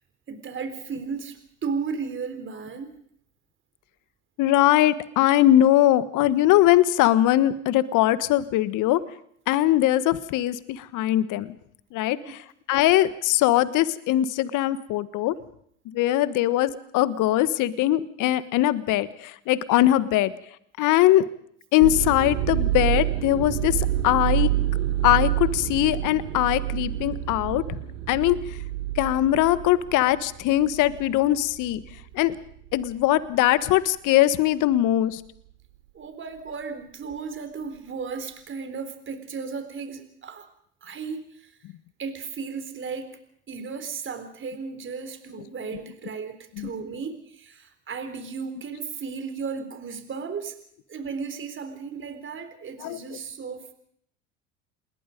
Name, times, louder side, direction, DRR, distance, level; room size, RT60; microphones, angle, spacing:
voice 1, 0.3-3.0 12.2-12.4 35.9-40.5 40.8-41.6 42.0-43.2 43.5-50.6 50.9-53.7, right 5 dB, 30° right, 8 dB, 3.9 m, -35 dB
voice 2, 4.4-9.0 9.5-11.5 11.9-12.4 12.7-15.3 15.9-20.3 20.8-21.2 21.7-24.5 25.0-27.8 28.1-28.4 28.9-31.8 32.1-32.3 32.7-35.2 46.6-46.7 52.8-53.0, left 14 dB, 55° left, 15 dB, 1.5 m, -21 dB
sound 1, 21.8-31.2 31.6-32.0 32.8-33.0, right 13 dB, 80° right, 1.9 m, -27 dB
28.5 x 21.0 x 5.3 m, 0.66 s
hypercardioid pair, 85°, 37 cm